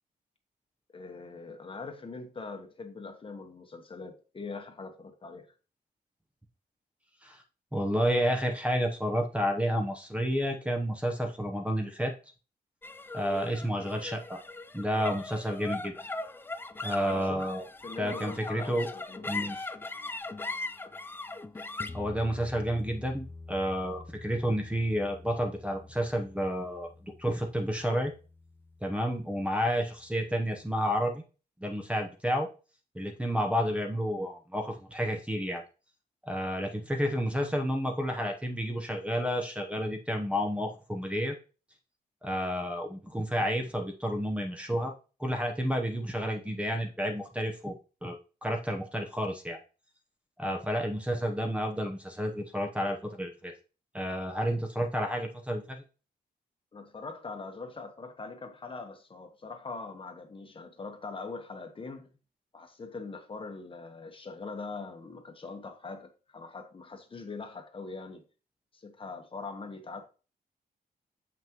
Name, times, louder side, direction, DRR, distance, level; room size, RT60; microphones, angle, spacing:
voice 1, 0.9-5.5 17.0-17.5 17.8-19.7 56.7-62.1 62.5-68.2 68.7-70.0, left 4 dB, 30° left, 1.2 m, -42 dB
voice 2, 7.7-12.1 13.1-14.4 14.7-15.9 16.8-17.6 18.0-18.9 19.3-19.6 21.9-28.1 28.8-31.2 31.6-32.5 32.9-35.6 36.2-41.4 42.2-44.9 45.2-47.7 48.0-49.6 50.4-53.5 53.9-55.8, equal, 5° right, 0.9 m, -30 dB
sound 1, 12.8-29.4, left 2 dB, 15° left, 0.4 m, -41 dB
7.3 x 5.8 x 3.0 m
cardioid pair, 120°, 17 cm